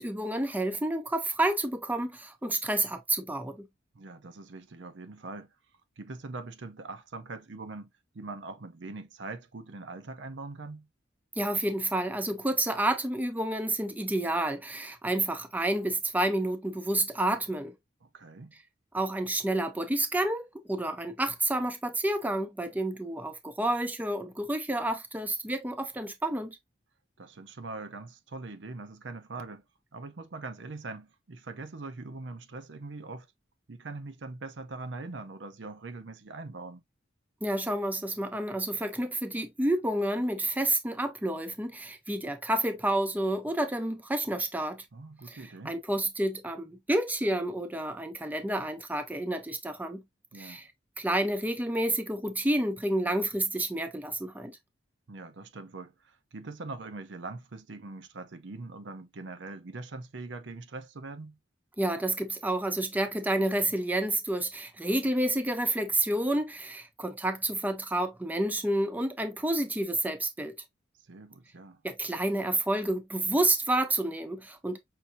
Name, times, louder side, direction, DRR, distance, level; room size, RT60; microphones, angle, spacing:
voice 1, 0.0-3.7 11.4-17.7 18.9-26.6 37.4-44.8 45.3-50.0 50.4-50.7 51.0-54.5 61.8-70.5 71.8-74.8, right 1 dB, 10° right, 0.6 m, -29 dB
voice 2, 3.9-5.5 6.0-7.9 8.1-10.9 18.0-18.5 27.2-29.6 29.9-33.3 33.7-36.8 44.9-45.8 50.3-50.6 55.1-61.4 71.1-71.8, right 3 dB, 70° right, 0.7 m, -42 dB
5.8 x 2.7 x 2.6 m
head